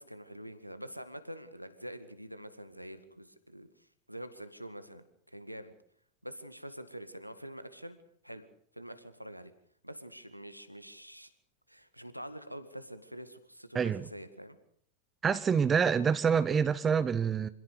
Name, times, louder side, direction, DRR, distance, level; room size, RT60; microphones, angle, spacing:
voice 1, 0.0-5.7 6.2-8.0 8.2-8.5 8.7-9.5 9.8-11.3 11.7-14.6, equal, 90° right, 1.9 m, -46 dB
voice 2, 13.7-14.1 15.2-17.5, right 6 dB, 20° right, 0.8 m, -27 dB
26.0 x 17.0 x 6.7 m
figure-of-eight pair, 90°, 0 cm